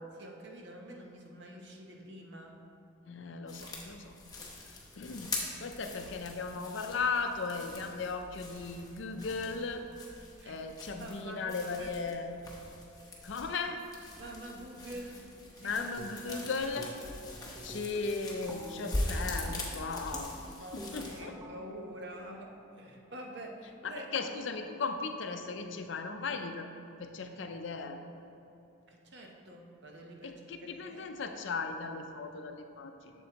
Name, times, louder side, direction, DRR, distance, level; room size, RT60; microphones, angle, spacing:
voice 1, 0.2-2.6 10.4-10.6 11.0-12.1 14.2-15.3 15.5-15.9 16.3-16.5 20.6-24.1 28.9-31.0, right 1 dB, 55° right, 1 dB, 0.8 m, -47 dB
voice 2, 3.1-5.3 5.6-9.8 10.5-12.3 13.2-13.8 15.6-16.9 17.6-20.3 20.7-21.3 23.8-26.7 27.0-28.0 30.2-33.1, left 4 dB, 60° left, 6 dB, 0.5 m, -37 dB
sound 1, 3.5-21.2, left 2 dB, 20° left, 0.9 m, -42 dB
sound 2, 16.0-16.4 16.7-17.2 17.5-23.4, equal, 10° right, 0.8 m, -49 dB
7.7 x 7.2 x 2.9 m, 2.9 s
head